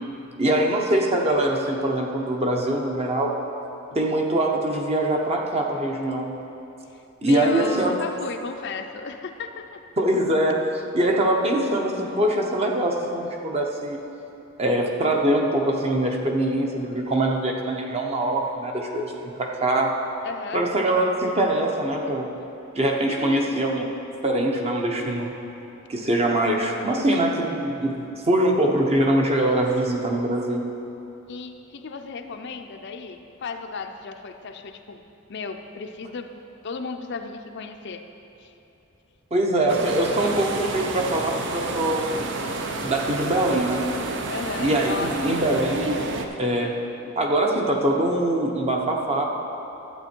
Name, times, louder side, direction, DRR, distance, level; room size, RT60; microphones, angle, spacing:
voice 1, 0.4-3.4 3.9-6.3 7.2-7.9 10.0-14.0 14.6-19.9 20.5-22.3 22.7-23.9 24.2-25.3 25.9-30.7 39.3-42.1 42.8-43.9 44.6-46.0 46.4-46.8 47.0-49.3, right 1 dB, 30° right, 1 dB, 0.9 m, -23 dB
voice 2, 6.9-9.8 20.2-20.6 23.1-23.7 31.3-35.0 35.3-36.3 36.6-38.0 38.4-38.5 44.3-45.4, left 4 dB, 55° left, 6 dB, 0.5 m, -34 dB
sound 1, 39.7-46.2, right 3 dB, 60° right, 0.7 m, -30 dB
11.5 x 7.9 x 4.5 m, 2.9 s
head